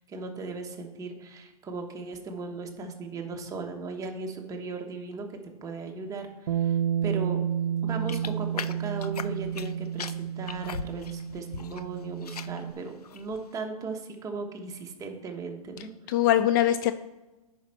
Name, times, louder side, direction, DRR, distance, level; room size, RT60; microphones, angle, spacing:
voice 1, 0.1-6.8 7.0-7.4 7.8-15.9, right 4 dB, 15° right, 3 dB, 1.3 m, -37 dB
Bass guitar, 6.5-12.7, right 9 dB, 80° right, 0.5 m, -31 dB
Walking In Mud, 8.1-9.7 10.0-11.8 12.1-12.6 13.0-13.4, left 6 dB, 85° left, 0.6 m, -39 dB
voice 2, 15.8-16.9, left 12 dB, 35° left, 11 dB, 0.4 m, -23 dB
10.0 x 5.3 x 4.4 m, 1.1 s
hypercardioid pair, 125°, 19 cm